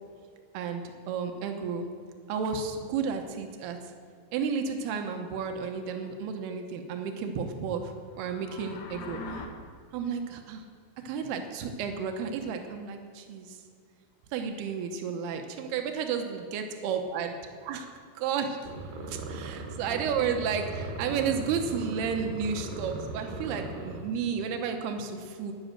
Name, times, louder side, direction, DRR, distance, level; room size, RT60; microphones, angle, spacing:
voice 1, 0.5-1.9 2.3-3.8 4.3-9.4 9.9-10.6 11.0-13.6 14.3-17.3 17.6-18.6 19.1-25.5, right 6 dB, 85° right, 5 dB, 3.0 m, -32 dB
sound 1, 8.1-9.5, left 3 dB, 65° left, 2.3 m, -41 dB
sound 2, 18.6-24.0, right 3 dB, 65° right, 2.7 m, -38 dB
11.5 x 10.5 x 7.7 m, 2.2 s
omnidirectional pair, 4.5 m